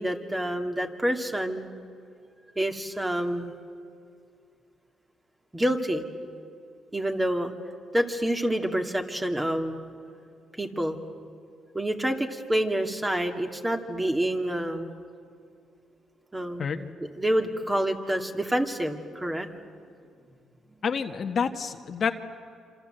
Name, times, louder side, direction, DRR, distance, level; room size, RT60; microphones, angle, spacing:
voice 1, 0.0-1.7 2.6-3.5 5.5-6.0 6.9-7.5 7.9-9.8 10.6-11.0 11.7-14.9 16.3-16.7 17.0-19.5, right 1 dB, 15° right, 4 dB, 2.5 m, -27 dB
voice 2, 16.6-16.9 20.8-22.1, left 6 dB, 50° left, 6 dB, 1.5 m, -28 dB
27.5 x 26.5 x 8.0 m, 2.4 s
cardioid pair, 90°, 0 cm